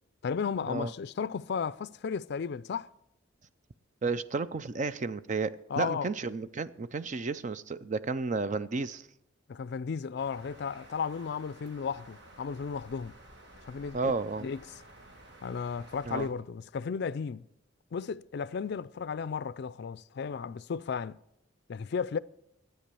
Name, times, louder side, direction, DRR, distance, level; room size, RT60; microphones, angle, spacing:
voice 1, 0.2-2.9 5.7-6.1 9.5-13.1 13.7-14.1 14.4-14.6 15.4-17.5 17.9-21.2 21.7-22.2, left 6 dB, 60° left, 0.4 m, -34 dB
voice 2, 4.0-9.1 13.9-14.5 16.1-16.3, right 4 dB, 40° right, 0.5 m, -32 dB
sound 1, 10.2-16.3, right 1 dB, 60° right, 2.2 m, -53 dB
13.0 x 9.2 x 6.9 m
head